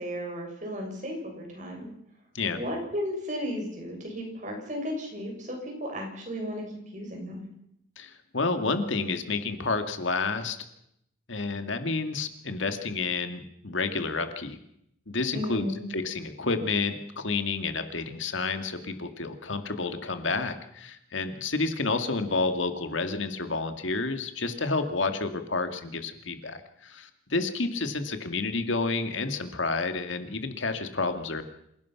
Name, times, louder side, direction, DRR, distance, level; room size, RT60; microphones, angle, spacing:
voice 1, 0.0-1.9 2.5-6.6 6.9-7.5 15.3-15.9, equal, 40° right, 1 dB, 7.2 m, -34 dB
voice 2, 8.0-10.6 11.3-14.6 15.1-15.7 15.9-31.4, left 3 dB, 75° left, 8 dB, 2.1 m, -30 dB
27.5 x 17.5 x 6.0 m, 0.75 s
head